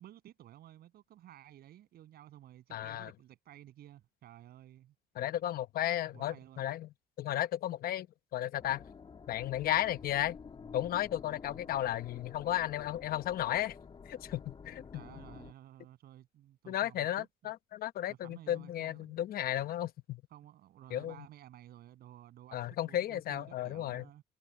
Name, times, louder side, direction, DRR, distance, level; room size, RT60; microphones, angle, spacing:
voice 1, 0.0-4.9 6.1-6.7 11.6-11.7 14.9-17.5 18.1-19.2 20.3-24.2, right 12 dB, 65° right, 7.8 m, -54 dB
voice 2, 2.7-3.1 5.2-6.9 7.2-8.1 8.3-8.8 9.3-10.4 10.7-13.8 14.1-14.8 16.7-20.2 20.9-21.1 22.5-24.0, left 12 dB, 60° left, 1.0 m, -34 dB
sound 1, 8.6-15.5, left 5 dB, 30° left, 2.3 m, -50 dB
cardioid pair, 110°, 17 cm